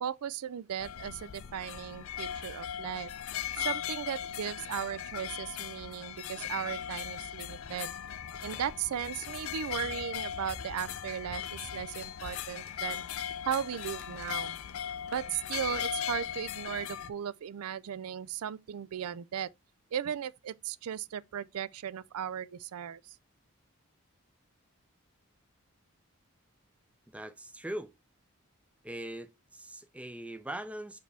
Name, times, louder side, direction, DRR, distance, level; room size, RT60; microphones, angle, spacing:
voice 1, 0.0-3.1 3.5-7.9 8.4-14.6 15.0-19.5 19.9-23.2, right 9 dB, 90° right, 0.4 m, -37 dB
sound 1, 0.8-17.1, left 9 dB, 75° left, 0.5 m, -38 dB
sound 2, 7.5-15.7, left 2 dB, 50° left, 0.9 m, -52 dB
voice 2, 27.1-27.9 28.8-31.0, right 1 dB, 5° right, 0.5 m, -41 dB
6.0 x 4.8 x 3.3 m
head